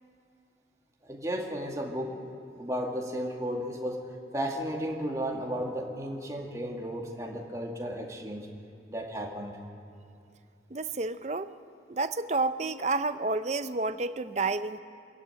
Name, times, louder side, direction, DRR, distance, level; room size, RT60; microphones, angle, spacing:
voice 1, 1.0-2.2 2.6-4.0 4.3-8.5 8.9-9.5, equal, 20° right, 0 dB, 2.1 m, -34 dB
voice 2, 10.7-11.5 11.9-14.8, right 3 dB, 40° right, 11 dB, 0.7 m, -30 dB
26.0 x 14.5 x 9.1 m, 2.6 s
head